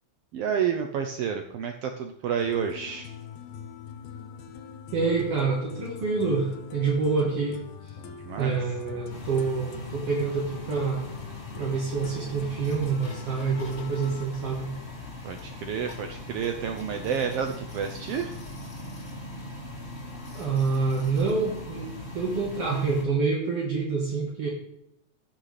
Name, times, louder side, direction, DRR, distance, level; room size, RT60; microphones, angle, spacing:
voice 1, 0.3-3.1 8.0-8.6 15.2-18.4, right 7 dB, 80° right, 5 dB, 1.4 m, -30 dB
sound 1, 2.4-14.3, left 7 dB, 75° left, 2.2 m, -42 dB
voice 2, 4.9-7.9 8.4-11.1 11.6-14.7 20.3-24.5, right 4 dB, 60° right, -2 dB, 2.1 m, -27 dB
sound 2, 9.1-23.0, left 2 dB, 25° left, 2.4 m, -40 dB
15.5 x 6.5 x 3.2 m, 0.79 s
omnidirectional pair, 3.3 m